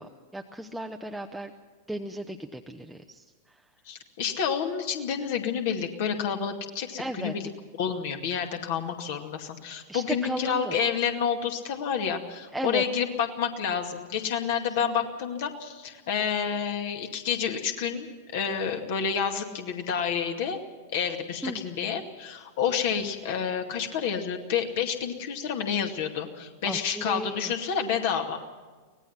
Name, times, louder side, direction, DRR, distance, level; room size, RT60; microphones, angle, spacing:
voice 1, 0.0-1.5 1.9-3.2 7.0-7.3 9.9-10.8 12.5-12.8 21.4-21.6 26.6-27.5, right 1 dB, 5° right, 3 dB, 0.9 m, -35 dB
voice 2, 3.9-7.5 7.8-20.6 20.9-28.4, left 7 dB, 50° left, 4 dB, 2.3 m, -29 dB
24.5 x 18.5 x 5.8 m, 1.4 s
figure-of-eight pair, 90°, 0 cm